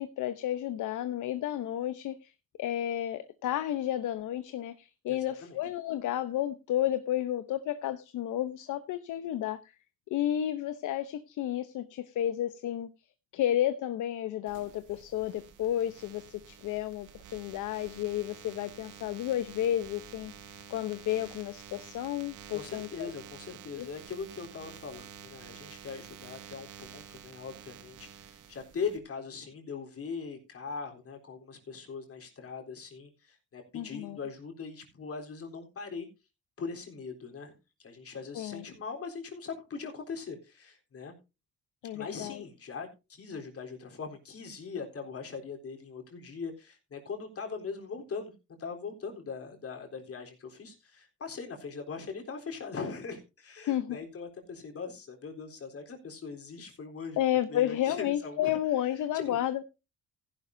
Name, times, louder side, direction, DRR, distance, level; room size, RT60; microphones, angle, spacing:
voice 1, 0.0-2.3 2.6-9.6 10.1-12.9 13.3-20.3 20.7-23.1 23.8-23.9 33.7-34.2 38.3-38.6 41.8-42.4 53.7-54.0 57.2-59.7, left 12 dB, 80° left, 11 dB, 0.9 m, -32 dB
voice 2, 5.1-5.6 22.5-36.1 36.6-37.5 37.8-41.1 41.9-48.3 48.6-57.2 57.5-58.6 59.1-59.4, left 5 dB, 50° left, 3 dB, 3.9 m, -40 dB
sound 1, 14.5-29.0, right 9 dB, 90° right, 2.0 m, -50 dB
15.5 x 11.5 x 2.7 m, 0.28 s
cardioid pair, 90°, 30 cm